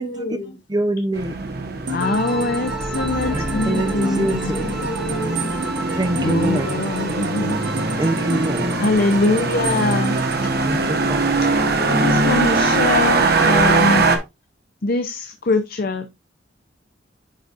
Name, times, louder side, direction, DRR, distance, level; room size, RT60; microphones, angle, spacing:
voice 1, 0.0-0.6 2.9-5.6 7.3-7.5 7.8-9.0 11.3-12.2, left 1 dB, 75° left, 1.6 m, -34 dB
voice 2, 0.7-1.4 3.3-4.6 6.0-6.7 8.0-8.7 10.6-11.3, right 1 dB, 20° right, 0.7 m, -24 dB
sound 1, 1.1-14.2, right 3 dB, 55° right, 1.2 m, -22 dB
voice 3, 1.9-4.8 6.2-7.6 8.0-8.1 8.8-10.2 11.9-14.1 14.8-16.1, left 2 dB, 55° left, 0.6 m, -22 dB
sound 2, 1.9-11.6, right 2 dB, 85° right, 1.4 m, -32 dB
sound 3, 2.0-13.6, right 1 dB, ahead, 1.2 m, -36 dB
10.5 x 4.0 x 2.5 m
head